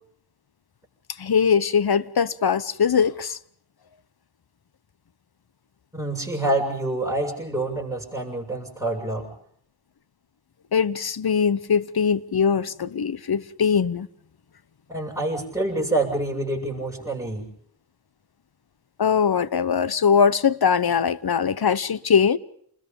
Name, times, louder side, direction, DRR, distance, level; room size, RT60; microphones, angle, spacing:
voice 1, 1.2-3.4 10.7-14.1 19.0-22.4, left 6 dB, 70° left, 0.9 m, -21 dB
voice 2, 5.9-9.3 14.9-17.5, right 2 dB, 5° right, 6.9 m, -27 dB
29.0 x 21.0 x 5.4 m
wide cardioid pair, 75°, 39 cm